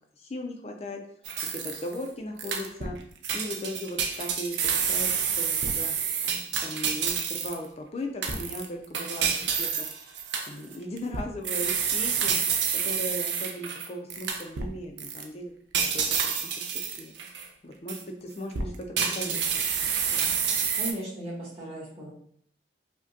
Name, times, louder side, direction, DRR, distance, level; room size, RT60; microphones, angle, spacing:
voice 1, 0.2-1.0 1.5-2.9 3.3-6.0 6.6-9.3 9.6-9.9 10.4-12.4 12.7-16.4 17.0-17.1 17.6-18.9 19.2-19.6 20.1-20.3, left 1 dB, 35° left, 3 dB, 0.4 m, -37 dB
sound 1, 1.3-2.0 2.4-3.0 3.2-7.7 8.2-14.7 15.0-15.2 15.7-17.5 17.9-18.0 18.5-20.9, right 7 dB, 70° right, 0.5 m, -28 dB
voice 2, 18.9-19.4 20.7-22.1, right 1 dB, 30° right, -9 dB, 1.4 m, -37 dB
4.9 x 2.2 x 2.6 m, 0.65 s
head